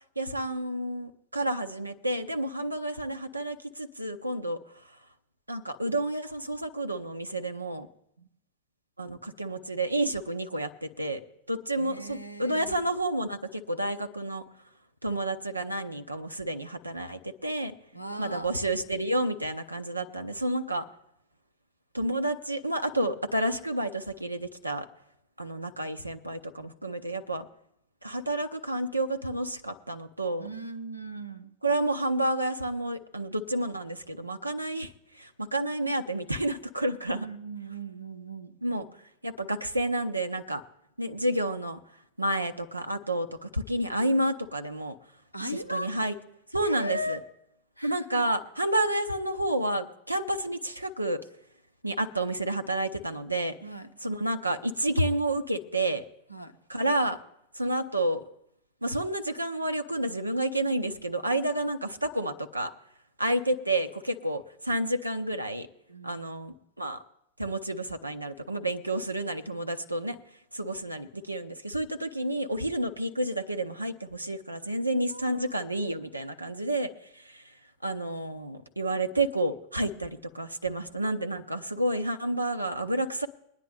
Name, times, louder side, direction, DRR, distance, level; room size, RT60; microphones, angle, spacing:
voice 1, 0.2-4.6 5.5-7.9 9.0-11.2 11.5-14.4 15.0-17.7 18.2-20.8 21.9-24.9 25.4-27.5 28.0-30.5 31.6-37.3 38.6-38.9 39.2-40.6 41.0-41.8 42.2-44.9 45.7-46.1 46.5-47.2 47.8-51.2 51.8-53.5 54.0-56.0 56.7-57.2 57.5-58.2 58.8-62.7 63.2-65.7 66.0-67.0 67.4-70.2 70.5-77.4 77.8-83.3, right 1 dB, 85° right, 7 dB, 0.6 m, -30 dB
voice 2, 11.8-12.8 17.9-18.5 30.4-31.5 37.1-38.6 45.3-45.9 46.6-47.2 47.8-48.2 53.6-53.9 56.3-56.5 65.9-66.2 74.9-75.6, equal, 90° left, 8 dB, 0.8 m, -38 dB
22.5 x 9.7 x 3.3 m, 0.78 s
figure-of-eight pair, 90°, 0 cm